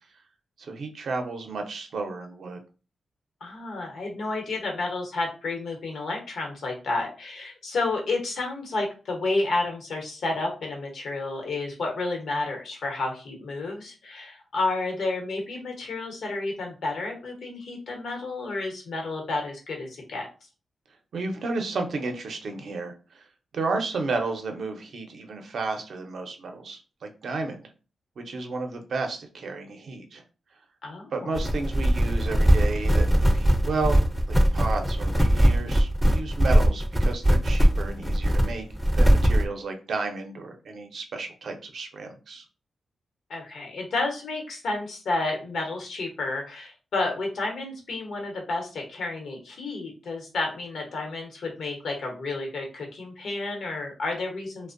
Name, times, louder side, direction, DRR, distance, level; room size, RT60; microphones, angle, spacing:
voice 1, 0.6-2.6 21.1-22.9 23.5-27.6 28.2-30.2 31.1-34.0 34.3-38.7 39.0-42.4, right 3 dB, 70° right, 4 dB, 0.5 m, -32 dB
voice 2, 3.4-20.3 30.8-31.3 43.3-54.7, left 2 dB, 80° left, 1 dB, 0.8 m, -31 dB
sound 1, 31.3-39.4, equal, 5° right, 0.4 m, -20 dB
2.5 x 2.0 x 2.5 m, 0.34 s
cardioid pair, 95°, 0 cm